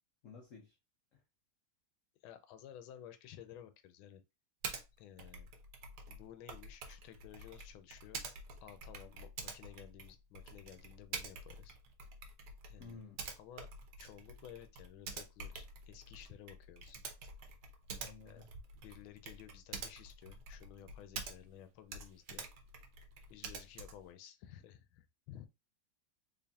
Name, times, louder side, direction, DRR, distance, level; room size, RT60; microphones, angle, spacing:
voice 1, 0.2-0.8 1.1-1.2 12.8-13.2 18.0-18.5, left 4 dB, 65° left, 0.8 m, -53 dB
voice 2, 2.2-4.2 5.0-5.5 6.1-8.2 8.6-11.7 12.7-13.0 13.4-13.7 14.0-17.0 18.3-18.4 18.8-22.5 23.3-25.5, left 10 dB, 90° left, 1.4 m, -54 dB
Typing, 4.6-4.8 5.2-21.6 21.9-24.1, right 4 dB, 65° right, 1.2 m, -48 dB
4.1 x 3.5 x 2.3 m
omnidirectional pair, 2.2 m